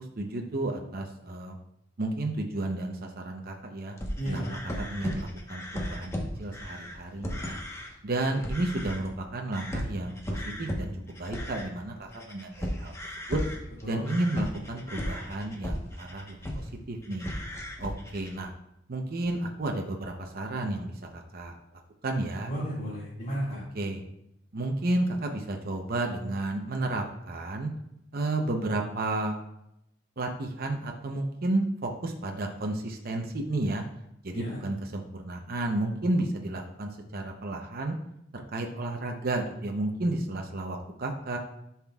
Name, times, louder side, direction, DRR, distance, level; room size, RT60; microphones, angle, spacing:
voice 1, 0.0-1.6 2.0-4.0 4.2-4.4 4.8-7.6 8.0-12.9 13.3-13.4 13.8-17.3 17.8-18.5 18.9-21.5 22.0-22.5 23.7-24.0 24.5-27.7 28.1-29.3 30.2-33.8 34.2-37.9 38.3-41.4, right 2 dB, 55° right, 2 dB, 0.7 m, -32 dB
sound 1, 4.0-7.9 8.3-9.2 9.5-16.7 17.0-18.4, equal, 15° left, 1.0 m, -36 dB
voice 2, 4.2-4.5 13.8-14.1 22.5-23.6 34.3-34.6, equal, 45° left, -8 dB, 2.0 m, -33 dB
10.5 x 5.8 x 2.3 m, 0.82 s
head